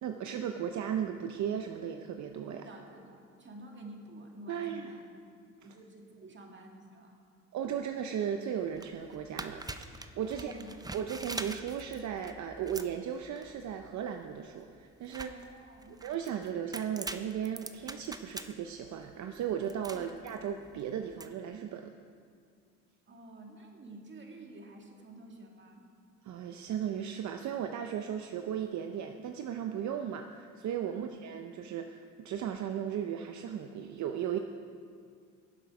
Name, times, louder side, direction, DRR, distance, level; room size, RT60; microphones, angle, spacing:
voice 1, 0.0-2.7 4.5-4.9 7.5-10.6 10.9-15.3 16.0-21.9 26.2-34.4, right 9 dB, 70° right, 6 dB, 0.7 m, -36 dB
voice 2, 2.5-5.0 5.6-7.2 10.3-10.7 15.3-16.0 19.9-20.1 23.1-25.8 30.9-31.2, right 1 dB, 40° right, 1 dB, 2.1 m, -50 dB
sound 1, 8.6-21.3, right 2 dB, 15° right, 0.6 m, -45 dB
16.5 x 7.8 x 4.8 m, 2.2 s
cardioid pair, 90°, 30 cm